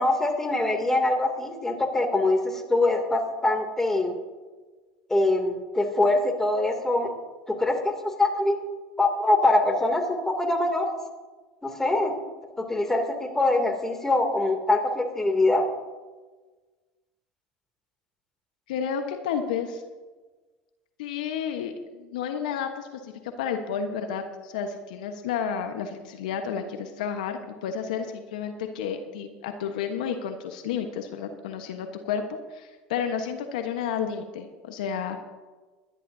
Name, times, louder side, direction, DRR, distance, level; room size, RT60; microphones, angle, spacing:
voice 1, 0.0-4.1 5.1-7.1 7.5-8.6 9.0-10.9 11.6-12.1 12.6-15.7, left 2 dB, 10° left, 3 dB, 2.9 m, -23 dB
voice 2, 18.7-19.8 21.0-35.2, left 7 dB, 80° left, 6 dB, 1.3 m, -31 dB
23.0 x 11.5 x 2.8 m, 1.3 s
hypercardioid pair, 85°, 4 cm